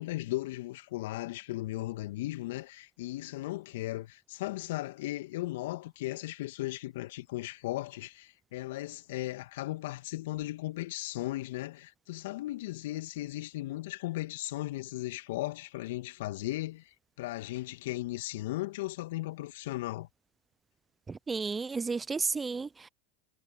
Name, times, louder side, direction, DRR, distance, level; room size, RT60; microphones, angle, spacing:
voice 1, 0.0-20.1, left 17 dB, 65° left, 2.2 m, -36 dB
voice 2, 21.1-22.9, right 4 dB, 20° right, 0.7 m, -33 dB
hypercardioid pair, 90°, 0 cm